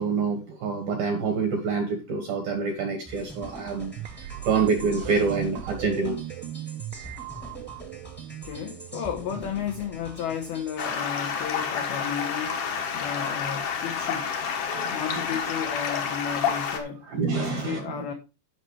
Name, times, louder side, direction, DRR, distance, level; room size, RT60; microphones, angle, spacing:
voice 1, 0.0-3.9 4.4-6.2 13.2-13.3 14.7-15.4 17.1-18.0, right 4 dB, 70° right, 2.3 m, -27 dB
sound 1, 3.0-10.9, equal, 10° left, 0.7 m, -45 dB
sound 2, 4.0-10.9, right 11 dB, 85° right, 3.3 m, -39 dB
voice 2, 8.4-12.6 12.9-14.3 14.9-17.0 17.4-18.1, left 8 dB, 85° left, 2.1 m, -33 dB
Stream, 10.8-16.8, left 7 dB, 65° left, 2.0 m, -29 dB
16.0 x 5.6 x 3.1 m
omnidirectional pair, 5.9 m